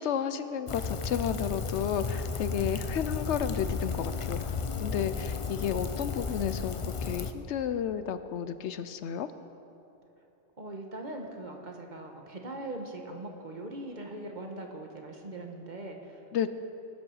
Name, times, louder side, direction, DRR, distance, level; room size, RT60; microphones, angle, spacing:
voice 1, 0.0-4.5 4.8-9.3 16.3-16.5, left 8 dB, 75° left, 12 dB, 0.9 m, -32 dB
Rain, 0.7-7.3, left 5 dB, 40° left, 0.5 m, -34 dB
voice 2, 10.6-16.2, right 2 dB, 40° right, 2 dB, 1.4 m, -41 dB
20.5 x 7.6 x 6.3 m, 2.9 s
omnidirectional pair, 1.2 m